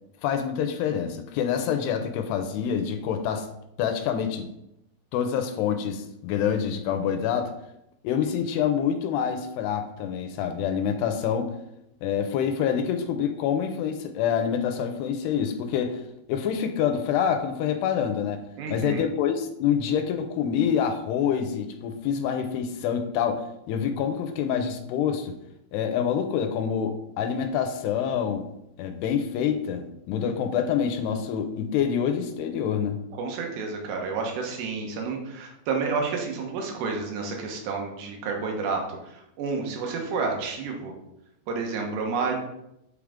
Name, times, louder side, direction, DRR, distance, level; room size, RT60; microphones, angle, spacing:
voice 1, 0.2-3.5 3.8-4.5 5.1-7.5 8.0-11.5 12.0-16.0 16.3-18.4 18.7-25.3 25.7-28.5 28.8-33.0, left 8 dB, 80° left, 7 dB, 2.6 m, -26 dB
voice 2, 18.6-19.0 33.1-40.9 41.5-42.3, right 4 dB, 75° right, 1 dB, 3.2 m, -30 dB
7.6 x 4.9 x 3.6 m, 0.81 s
omnidirectional pair, 5.0 m